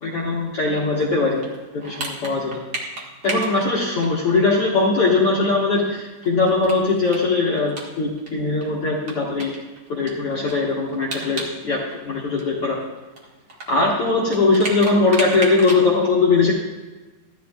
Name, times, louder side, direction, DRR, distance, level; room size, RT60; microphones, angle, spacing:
voice 1, 0.0-1.4 1.7-2.6 3.2-9.5 9.9-12.8 13.7-16.5, left 3 dB, 65° left, -4 dB, 1.4 m, -20 dB
sound 1, 0.8-4.5 4.8-4.9 5.1-5.2 5.6-8.3 8.6-8.7 9.1-11.6 11.8-15.8, right 2 dB, 60° right, 1.1 m, -33 dB
15.0 x 12.0 x 2.4 m, 1.2 s
omnidirectional pair, 4.7 m